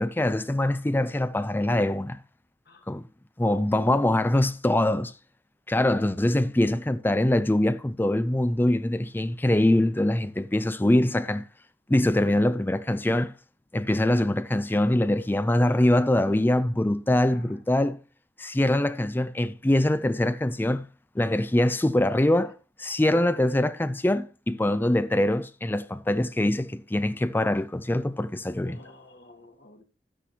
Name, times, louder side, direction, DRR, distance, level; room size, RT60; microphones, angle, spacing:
voice 1, 0.0-2.2 2.9-3.0 3.4-5.1 5.7-11.5 11.9-13.3 13.7-18.0 18.4-20.9 21.2-22.5 22.8-28.8, left 1 dB, 10° left, 0.4 m, -23 dB
voice 2, 17.2-17.6 28.6-29.8, left 2 dB, 60° left, 2.0 m, -51 dB
12.0 x 10.0 x 2.8 m
head